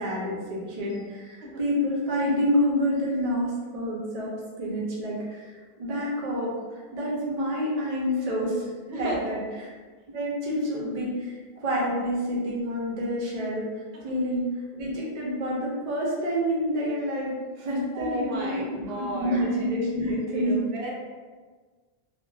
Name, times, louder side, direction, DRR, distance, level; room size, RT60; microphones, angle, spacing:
voice 1, 0.0-5.5 5.8-9.7 10.1-13.7 14.0-17.3 17.6-20.7, equal, 45° right, -4 dB, 0.6 m, -28 dB
voice 2, 8.9-9.3 17.9-18.6 18.9-19.4 20.5-20.9, right 1 dB, 80° right, -3 dB, 0.8 m, -33 dB
2.6 x 2.1 x 2.3 m, 1.4 s
omnidirectional pair, 1.0 m